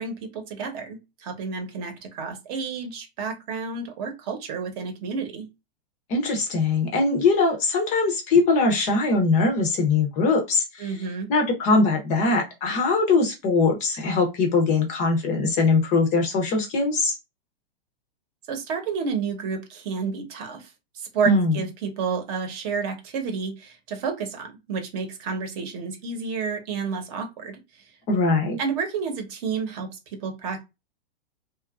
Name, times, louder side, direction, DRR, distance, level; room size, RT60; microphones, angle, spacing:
voice 1, 0.0-5.5 10.8-11.3 18.5-20.7 20.9-27.6 28.6-30.6, right 5 dB, 40° right, 5 dB, 0.8 m, -30 dB
voice 2, 6.1-11.0 11.3-17.2 21.3-21.5 28.1-28.6, left 3 dB, 25° left, 3 dB, 0.5 m, -21 dB
2.8 x 2.3 x 2.3 m, 0.24 s
hypercardioid pair, 140°, 29 cm